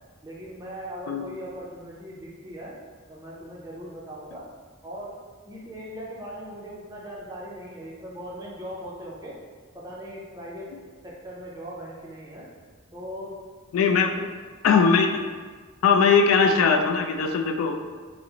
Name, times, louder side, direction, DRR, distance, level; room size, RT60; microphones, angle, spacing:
voice 1, 0.2-2.8 3.1-4.4 4.8-5.2 5.4-9.4 9.7-10.7 11.0-12.5 12.9-13.3 13.9-14.2, equal, 20° right, -5 dB, 0.5 m, -39 dB
voice 2, 13.7-14.1 14.6-15.2 15.8-17.8, left 5 dB, 90° left, 6 dB, 0.3 m, -20 dB
2.9 x 2.0 x 3.6 m, 1.5 s
head